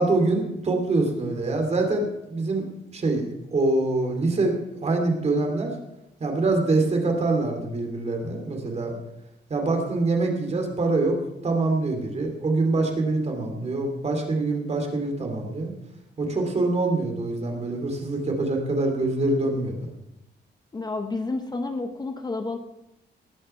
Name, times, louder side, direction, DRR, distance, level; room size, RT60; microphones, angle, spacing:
voice 1, 0.0-5.7 6.2-9.0 9.5-11.2 11.4-15.7 16.2-19.9, right 2 dB, 35° right, 3 dB, 2.6 m, -25 dB
voice 2, 20.7-22.6, left 3 dB, 20° left, 6 dB, 0.9 m, -30 dB
19.0 x 6.6 x 5.7 m, 0.89 s
wide cardioid pair, 145°, 19 cm